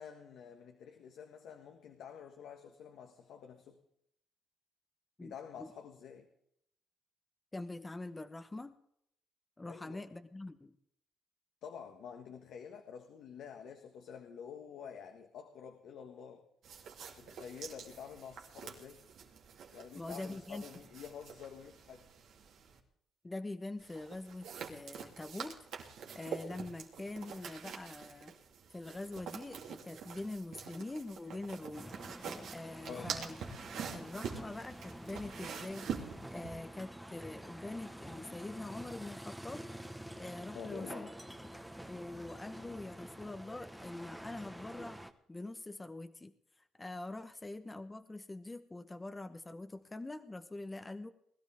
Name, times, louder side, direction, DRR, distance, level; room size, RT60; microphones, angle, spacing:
voice 1, 0.0-3.8 5.2-6.3 9.7-10.1 11.6-16.4 17.2-19.0 19.7-22.1 32.9-33.1 40.5-41.1, left 7 dB, 80° left, 4 dB, 1.6 m, -49 dB
voice 2, 5.2-5.7 7.5-8.8 9.6-10.7 19.9-20.6 23.2-25.6 26.1-28.4 28.7-31.9 32.5-33.4 33.9-39.6 40.2-41.1 41.4-41.6 41.8-45.0 45.3-46.3 46.8-51.1, left 2 dB, 20° left, 10 dB, 1.0 m, -44 dB
sound 1, 16.6-22.8 23.8-36.5, right 7 dB, 75° right, 2.9 m, -46 dB
sound 2, 31.7-45.1, right 1 dB, 5° right, 1.3 m, -48 dB
21.0 x 12.5 x 3.5 m, 0.72 s
cardioid pair, 90°, 0 cm